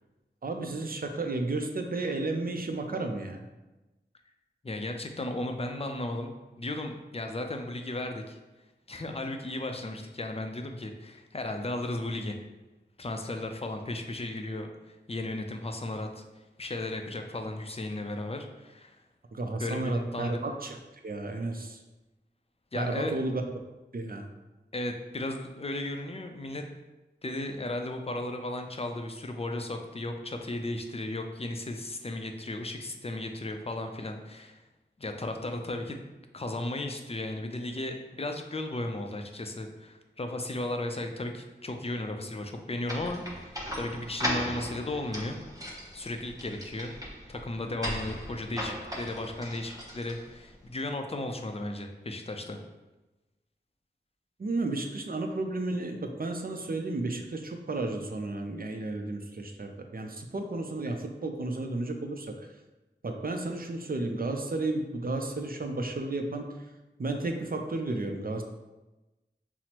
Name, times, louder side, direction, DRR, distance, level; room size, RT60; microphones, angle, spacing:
voice 1, 0.4-3.4 19.3-20.8 21.0-21.8 22.8-23.4 23.9-24.3 54.4-62.3 63.0-66.5 67.0-68.4, right 2 dB, 55° right, 4 dB, 0.5 m, -32 dB
voice 2, 4.6-8.4 8.9-12.4 13.0-16.2 16.6-19.0 19.6-20.4 22.7-23.2 24.7-26.6 27.2-34.6 35.0-36.0 36.3-45.4 45.9-46.9 47.3-52.6, left 2 dB, 35° left, 4 dB, 0.4 m, -35 dB
sound 1, 42.9-50.5, equal, 20° right, 0.8 m, -37 dB
5.8 x 2.0 x 2.9 m, 1.1 s
wide cardioid pair, 45°, 18 cm